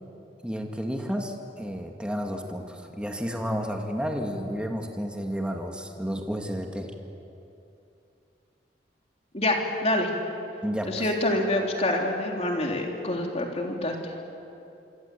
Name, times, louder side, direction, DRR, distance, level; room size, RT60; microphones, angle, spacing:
voice 1, 0.4-6.9 10.6-11.1, equal, 5° right, 2 dB, 2.2 m, -31 dB
voice 2, 9.3-10.1 10.9-14.0, left 1 dB, 35° left, 1 dB, 3.5 m, -26 dB
26.5 x 25.5 x 8.6 m, 2.8 s
head